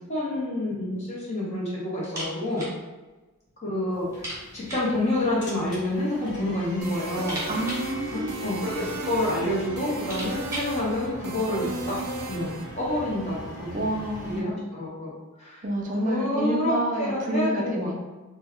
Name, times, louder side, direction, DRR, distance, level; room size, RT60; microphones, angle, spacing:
voice 1, 0.1-2.7 3.6-7.4 8.1-12.0 12.2-13.9 14.2-15.1 15.4-15.6 16.0-17.9, left 1 dB, 30° left, -7 dB, 0.8 m, -28 dB
sound 1, 2.0-2.8 3.1-3.2 3.5-3.6 4.1-5.0 5.9-6.5 6.8-8.8 9.5-9.6 9.8-10.8, right 1 dB, 15° right, 0.9 m, -38 dB
sound 2, 3.9-14.4, right 1 dB, 50° left, 1.2 m, -41 dB
sound 3, 6.8-12.6, right 2 dB, 90° right, 0.6 m, -35 dB
voice 2, 7.5-8.7 13.7-14.7 15.6-17.9, right 1 dB, 35° right, 0 dB, 0.4 m, -29 dB
3.0 x 2.2 x 3.5 m, 1.2 s
head